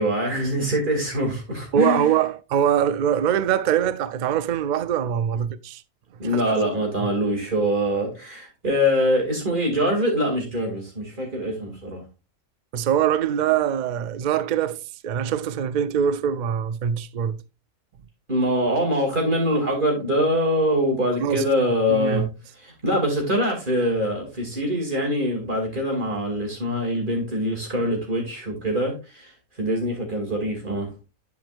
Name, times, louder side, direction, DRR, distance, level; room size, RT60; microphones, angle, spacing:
voice 1, 0.0-2.1 6.2-12.0 18.3-22.2 22.6-29.3 29.6-30.9, equal, 40° right, 2.7 m, -24 dB
voice 2, 1.7-5.8 6.2-6.7 7.0-7.1 12.7-17.4 21.2-21.5 21.9-22.3, right 9 dB, 70° right, 0.4 m, -23 dB
10.5 x 5.2 x 2.5 m
omnidirectional pair, 1.4 m